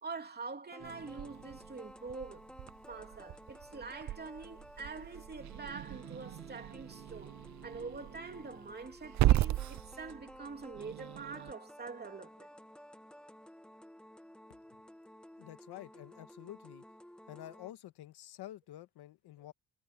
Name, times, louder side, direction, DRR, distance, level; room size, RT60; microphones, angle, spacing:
voice 1, 0.0-2.5 2.9-7.4 7.6-12.5, right 4 dB, 25° right, 3.0 m, -45 dB
sound 1, 0.7-17.7, equal, ahead, 1.2 m, -54 dB
Growling / Hiss, 0.8-11.5, right 14 dB, 45° right, 0.5 m, -37 dB
voice 2, 15.4-16.8 17.3-19.5, left 14 dB, 80° left, 1.5 m, -49 dB
cardioid pair, 120°, 39 cm